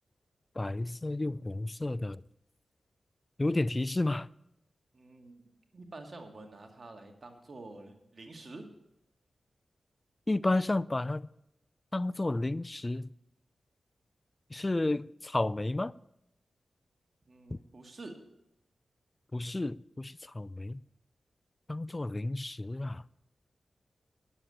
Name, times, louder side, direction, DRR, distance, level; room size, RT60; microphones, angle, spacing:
voice 1, 0.6-2.2 3.4-4.3 10.3-11.3 11.9-13.1 14.5-15.9 17.5-17.6 19.3-20.8 21.7-23.0, left 2 dB, 30° left, 0.4 m, -31 dB
voice 2, 4.9-5.4 5.7-8.6 17.3-18.2, right 2 dB, 50° right, 2.0 m, -48 dB
9.8 x 7.2 x 8.7 m
cardioid pair, 40°, 0 cm